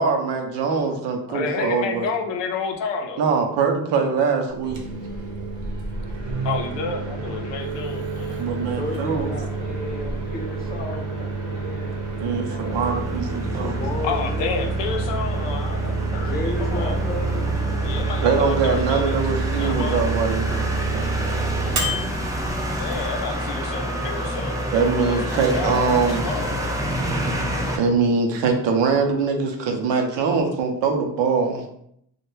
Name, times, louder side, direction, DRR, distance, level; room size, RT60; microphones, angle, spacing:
voice 1, 0.0-2.1 3.2-4.8 7.1-7.2 8.4-9.3 12.2-13.8 18.2-20.6 20.9-22.0 24.7-26.3 27.7-31.7, right 5 dB, 80° right, 3 dB, 0.6 m, -23 dB
voice 2, 1.3-3.3 6.4-8.4 10.1-10.2 11.5-12.3 14.0-17.0 17.8-19.2 19.5-20.0 22.8-24.7 25.1-26.6, left 5 dB, 85° left, 4 dB, 0.5 m, -30 dB
Microwave oven, 4.5-23.3, right 3 dB, 45° right, 0.7 m, -30 dB
voice 3, 8.7-12.0 12.5-14.7 16.1-17.6, left 2 dB, 20° left, 0 dB, 0.7 m, -33 dB
sound 1, 12.7-27.8, right 1 dB, 10° right, 0.4 m, -27 dB
2.2 x 2.1 x 3.0 m, 0.71 s
cardioid pair, 65°, 42 cm